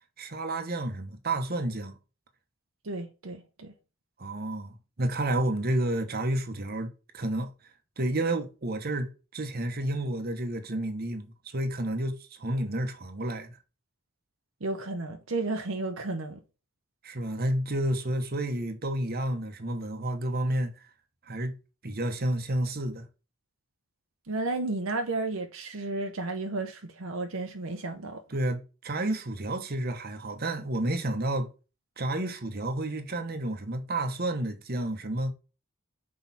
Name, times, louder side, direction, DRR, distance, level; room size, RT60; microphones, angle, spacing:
voice 1, 0.2-2.0 4.2-7.5 8.0-13.5 17.0-20.7 21.3-21.6 21.8-23.0 28.3-31.5 32.0-35.3, right 1 dB, 45° right, 1.1 m, -30 dB
voice 2, 2.8-3.7 14.6-16.4 24.3-28.2, right 2 dB, 70° right, 0.9 m, -33 dB
6.2 x 4.8 x 4.1 m
head